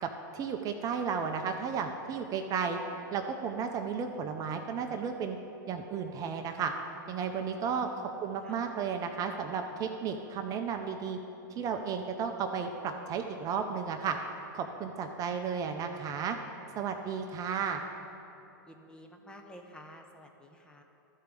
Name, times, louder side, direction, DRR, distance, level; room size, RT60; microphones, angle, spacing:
voice 1, 0.0-2.8 3.1-5.4 5.7-6.7 7.1-7.9 8.2-11.2 11.6-14.2 14.5-16.4 16.8-17.8, right 6 dB, 30° right, 5 dB, 0.6 m, -33 dB
voice 2, 7.8-8.2 8.4-8.5 18.7-20.8, equal, 5° left, 3 dB, 0.8 m, -51 dB
13.0 x 4.6 x 5.2 m, 2.9 s
hypercardioid pair, 110°, 11 cm